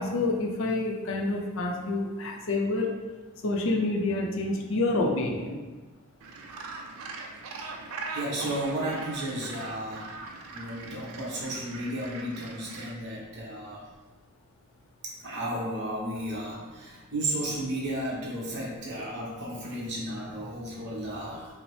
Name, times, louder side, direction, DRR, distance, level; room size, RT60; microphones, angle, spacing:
voice 1, 0.0-3.0 3.4-5.6, left 2 dB, 60° left, 1 dB, 0.5 m, -28 dB
Gull seagull, 6.2-12.9, right 3 dB, 70° right, 0.4 m, -41 dB
voice 2, 8.1-10.1 10.5-13.8 15.0-21.5, right 1 dB, 50° right, -5 dB, 1.0 m, -33 dB
5.1 x 2.0 x 3.2 m, 1.3 s
head